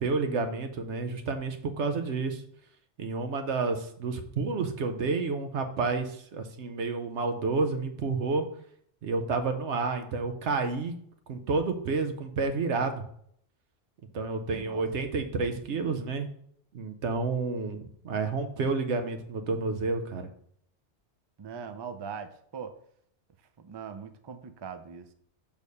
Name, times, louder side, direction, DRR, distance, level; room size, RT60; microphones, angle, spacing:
voice 1, 0.0-2.4 3.0-8.4 9.0-10.9 11.3-13.0 14.1-16.3 16.7-20.3, right 4 dB, 90° right, 7 dB, 1.1 m, -30 dB
voice 2, 14.5-14.8 21.4-22.8 23.6-25.1, right 6 dB, 40° right, 9 dB, 0.4 m, -41 dB
6.5 x 3.5 x 5.3 m, 0.66 s
omnidirectional pair, 1.1 m